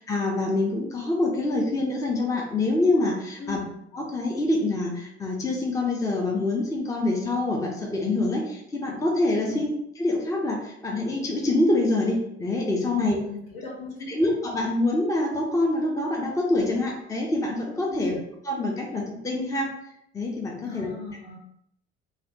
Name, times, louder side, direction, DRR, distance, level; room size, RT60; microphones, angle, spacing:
voice 1, 0.0-3.6 3.9-9.7 10.0-13.2 14.1-18.2 18.5-19.7 20.1-20.9, left 2 dB, 10° left, 0 dB, 0.6 m, -25 dB
voice 2, 3.4-3.7 9.5-9.6 12.9-14.2 17.9-18.2 20.6-21.4, left 3 dB, 65° left, -6 dB, 1.4 m, -36 dB
3.2 x 2.3 x 2.7 m, 0.76 s
figure-of-eight pair, 60°, 33 cm